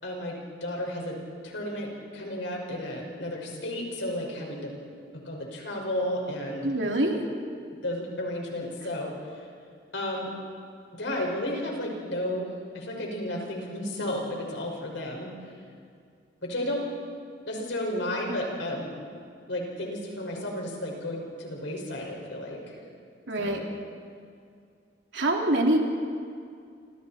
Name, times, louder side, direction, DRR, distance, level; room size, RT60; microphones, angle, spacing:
voice 1, 0.0-4.7 5.3-6.7 7.8-9.1 9.9-10.3 10.9-15.3 16.4-16.8 17.5-18.9 19.5-22.7 23.4-23.6, left 1 dB, 90° left, -1 dB, 5.6 m, -33 dB
voice 2, 6.6-7.2 23.3-23.6 25.1-25.8, right 1 dB, 90° right, 1 dB, 3.1 m, -24 dB
29.0 x 26.5 x 4.4 m, 2.3 s
head